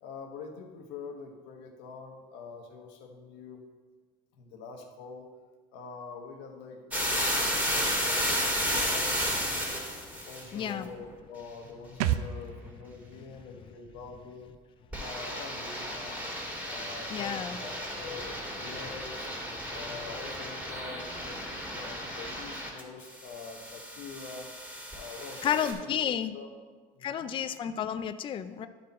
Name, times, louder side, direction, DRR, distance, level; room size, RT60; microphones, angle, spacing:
voice 1, 0.0-3.6 4.3-5.3 5.7-9.9 10.2-14.6 15.0-16.2 16.7-19.3 19.7-21.4 21.7-24.5 24.9-26.5 27.0-27.3, left 4 dB, 75° left, 3 dB, 1.2 m, -45 dB
sound 1, 6.9-10.4 14.9-22.8 23.1-25.7, equal, 5° right, 2.1 m, -33 dB
voice 2, 10.5-10.9 17.1-17.6 25.4-26.3 27.0-28.7, left 9 dB, 30° left, 11 dB, 0.4 m, -31 dB
sound 2, 12.0-15.5 15.8-15.9, right 11 dB, 85° right, 0.4 m, -36 dB
11.5 x 4.2 x 4.2 m, 1.4 s
supercardioid pair, 110°, 18 cm